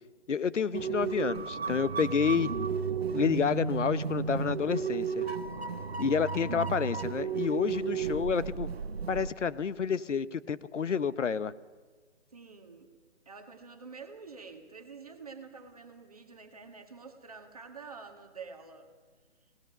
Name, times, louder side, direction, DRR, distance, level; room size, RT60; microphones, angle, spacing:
voice 1, 0.3-2.5 3.1-5.3 6.0-8.7 9.1-11.5, left 6 dB, 80° left, 16 dB, 0.9 m, -29 dB
sound 1, 0.7-9.3, right 6 dB, 60° right, 1.1 m, -33 dB
voice 2, 12.3-12.9 13.2-18.9, right 5 dB, 30° right, 4 dB, 1.6 m, -48 dB
24.0 x 18.5 x 6.8 m, 1.4 s
hypercardioid pair, 180°, 36 cm